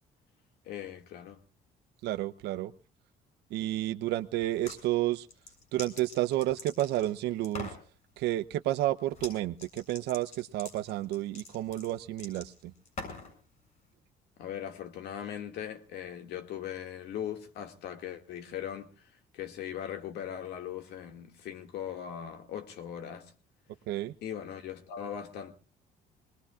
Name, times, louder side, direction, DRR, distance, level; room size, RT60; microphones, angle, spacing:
voice 1, 0.6-1.4 14.4-18.9 19.3-23.3 24.2-25.5, left 9 dB, 80° left, 2.2 m, -39 dB
voice 2, 2.0-2.7 3.5-5.3 5.7-7.7 8.2-12.7 23.9-24.1, right 15 dB, 80° right, 0.9 m, -31 dB
sound 1, 4.4-4.8 5.3-7.1 7.4-7.8 9.1-9.3 9.6-13.3, left 3 dB, 45° left, 7.0 m, -44 dB
23.5 x 20.5 x 2.5 m
cardioid pair, 110°, 17 cm